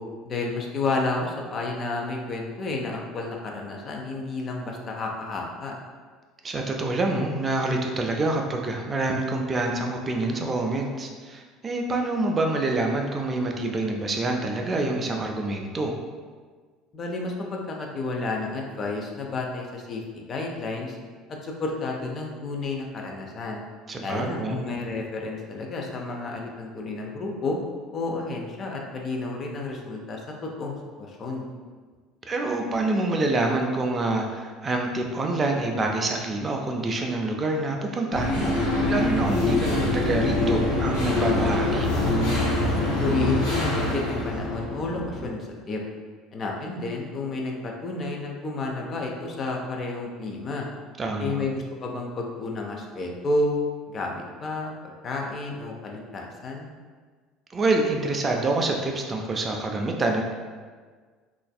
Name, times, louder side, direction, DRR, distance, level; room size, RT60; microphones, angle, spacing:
voice 1, 0.2-5.7 16.9-21.0 21.4-23.6 24.0-27.6 27.9-31.4 43.0-45.8 46.3-50.7 51.2-53.5 53.9-56.7, left 2 dB, 35° left, 0 dB, 0.4 m, -31 dB
voice 2, 6.4-15.9 23.9-24.6 32.3-38.5 38.9-41.9 51.0-51.4 57.5-60.3, right 2 dB, 30° right, 2 dB, 0.3 m, -26 dB
Decayed Breath, 38.1-45.2, left 2 dB, 75° left, 1.0 m, -24 dB
3.2 x 2.4 x 2.3 m, 1.5 s
figure-of-eight pair, 60°, 0 cm